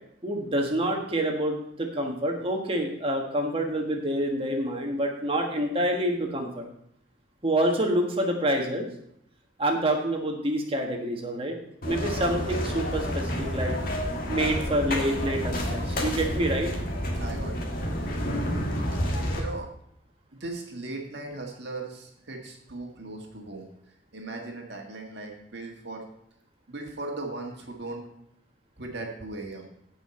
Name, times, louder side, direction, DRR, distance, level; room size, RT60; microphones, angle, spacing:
voice 1, 0.2-6.6 7.4-8.9 9.6-11.5 11.8-13.7 14.3-16.7, right 1 dB, 30° right, 2 dB, 1.6 m, -27 dB
sound 1, 11.8-19.4, equal, 45° left, 2.0 m, -29 dB
voice 2, 17.2-17.7 18.9-19.0 19.4-19.7 20.4-23.7 24.1-26.0 26.7-28.1 28.8-29.7, right 2 dB, 55° right, 1 dB, 1.7 m, -38 dB
15.5 x 5.7 x 4.4 m, 0.75 s
head